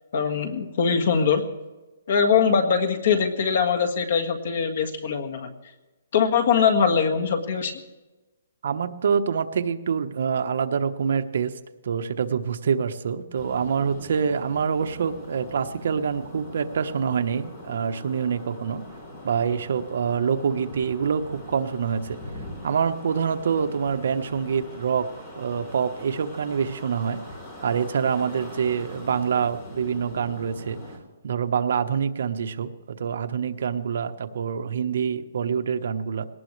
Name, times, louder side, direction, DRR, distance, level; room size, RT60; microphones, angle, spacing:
voice 1, 0.1-1.5 2.1-5.5 6.1-7.7, left 6 dB, 45° left, 6 dB, 1.8 m, -22 dB
voice 2, 8.6-11.5 11.8-18.8 19.2-22.2 22.6-25.1 25.3-27.2 27.6-30.8 31.2-36.2, right 6 dB, 55° right, 8 dB, 1.0 m, -26 dB
sound 1, 13.3-31.0, left 1 dB, 25° left, 3.5 m, -42 dB
22.0 x 18.5 x 3.3 m, 1.1 s
hypercardioid pair, 175°, 0 cm